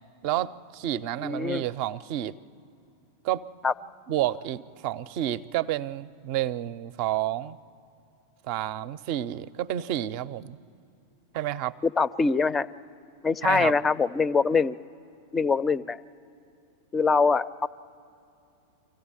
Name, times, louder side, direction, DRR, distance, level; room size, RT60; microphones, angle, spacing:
voice 1, 0.2-2.3 3.2-3.5 4.1-7.6 8.5-10.6 11.3-11.7 13.4-13.7, right 13 dB, 50° right, 15 dB, 0.5 m, -30 dB
voice 2, 1.2-1.6 3.6-3.7 11.8-12.7 13.2-14.8 15.3-16.0 16.9-17.7, left 4 dB, 20° left, 19 dB, 0.4 m, -23 dB
24.5 x 15.5 x 8.9 m, 2.7 s
figure-of-eight pair, 90°, 0 cm